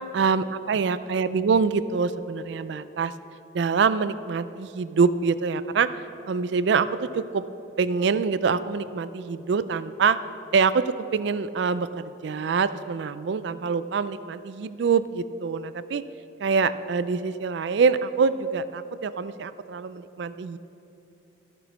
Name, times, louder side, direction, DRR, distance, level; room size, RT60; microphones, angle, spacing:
voice 1, 0.1-3.1 3.5-5.9 6.3-7.4 7.8-10.2 10.5-16.0 16.4-20.6, right 5 dB, 65° right, 14 dB, 0.4 m, -25 dB
14.0 x 6.1 x 6.1 m, 2.9 s
head